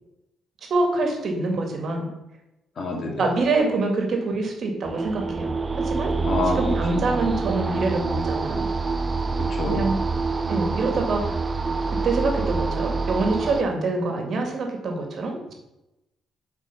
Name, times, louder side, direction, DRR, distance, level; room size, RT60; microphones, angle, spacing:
voice 1, 0.7-2.1 3.2-6.1 6.6-8.7 9.7-10.0 10.5-11.4 12.0-15.5, right 3 dB, 60° right, 3 dB, 2.0 m, -25 dB
voice 2, 2.8-3.3 6.2-7.3 9.5-9.8, left 2 dB, 50° left, 1 dB, 2.1 m, -28 dB
sound 1, 4.8-13.6, right 4 dB, 30° right, 0.5 m, -26 dB
7.7 x 4.8 x 5.5 m, 0.93 s
cardioid pair, 90°, 0 cm